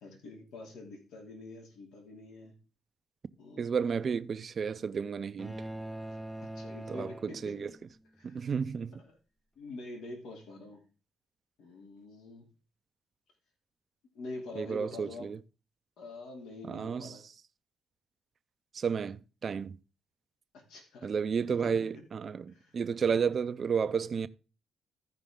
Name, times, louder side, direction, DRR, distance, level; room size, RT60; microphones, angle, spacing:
voice 1, 0.0-2.6 3.4-3.8 6.1-7.6 8.2-8.5 9.0-9.1 9.6-10.8 11.6-12.5 14.1-15.3 16.0-17.2 20.5-21.1 21.6-21.9 22.5-22.8, left 2 dB, 85° left, 2.8 m, -46 dB
voice 2, 3.6-5.7 6.9-7.7 8.2-9.0 14.6-15.4 16.6-17.2 18.7-19.8 21.0-24.3, right 6 dB, 45° right, 0.6 m, -32 dB
sound 1, 5.4-7.9, right 1 dB, ahead, 0.6 m, -42 dB
15.0 x 5.2 x 3.7 m
cardioid pair, 90°, 0 cm